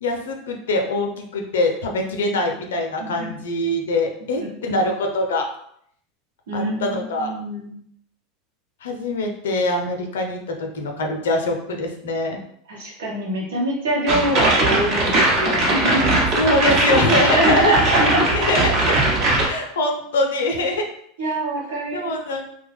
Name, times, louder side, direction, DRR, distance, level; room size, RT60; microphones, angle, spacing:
voice 1, 0.0-5.5 6.5-7.3 8.8-12.4 16.3-17.7 18.0-18.8 19.4-20.8 21.2-21.3 21.9-22.6, left 2 dB, 75° left, 3 dB, 0.5 m, -23 dB
voice 2, 4.4-4.8 6.5-7.7 12.7-16.2 17.3-18.3 19.2-19.3 21.2-22.1, right 1 dB, 75° right, -3 dB, 1.0 m, -24 dB
sound 1, 14.1-19.5, right 2 dB, 50° right, 0.9 m, -19 dB
2.8 x 2.2 x 3.4 m, 0.69 s
figure-of-eight pair, 80°, 0 cm